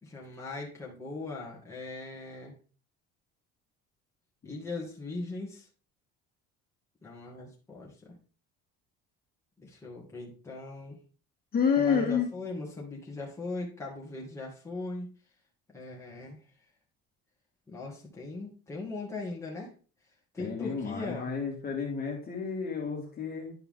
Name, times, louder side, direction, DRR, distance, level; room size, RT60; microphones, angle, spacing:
voice 1, 0.0-2.5 4.4-5.7 7.0-7.9 9.6-10.9 11.8-15.1 15.7-16.4 17.7-19.7 20.3-21.3, left 3 dB, 10° left, -4 dB, 2.2 m, -39 dB
voice 2, 11.5-12.3 20.4-23.5, left 6 dB, 30° left, 0 dB, 2.4 m, -29 dB
10.5 x 4.4 x 3.8 m, 0.37 s
cardioid pair, 145°, 29 cm